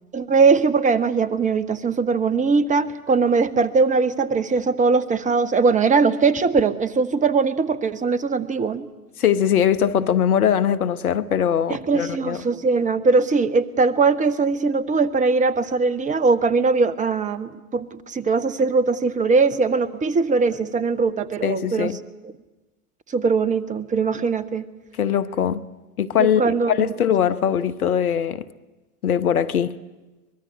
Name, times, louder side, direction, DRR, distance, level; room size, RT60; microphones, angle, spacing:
voice 1, 0.1-8.9 11.7-21.9 23.1-24.6 26.2-26.8, right 4 dB, 15° right, 1.0 m, -20 dB
voice 2, 9.2-12.4 21.4-22.0 25.0-25.6 26.0-28.5 29.0-29.8, left 9 dB, 75° left, 1.0 m, -21 dB
24.0 x 21.0 x 9.1 m
figure-of-eight pair, 90°, 45 cm